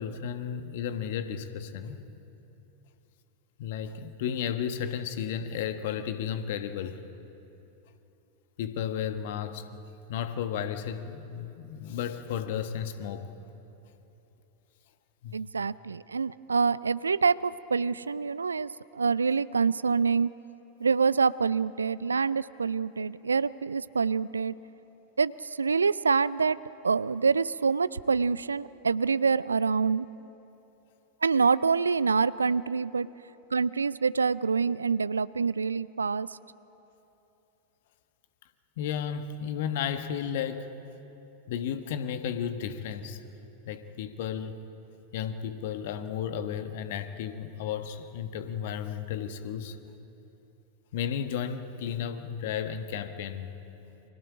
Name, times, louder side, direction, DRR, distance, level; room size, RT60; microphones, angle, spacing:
voice 1, 0.0-2.1 3.6-7.0 8.6-9.8 10.1-13.3 15.2-15.4 38.8-40.7 41.5-43.2 43.6-44.6 45.1-49.8 50.9-53.5, left 8 dB, 55° left, 9 dB, 1.4 m, -33 dB
voice 2, 15.3-20.3 20.8-24.5 25.2-26.6 26.8-30.1 31.2-33.1 33.5-36.3, right 5 dB, 75° right, 19 dB, 0.4 m, -26 dB
30.0 x 25.0 x 5.0 m, 3.0 s
figure-of-eight pair, 90°, 0 cm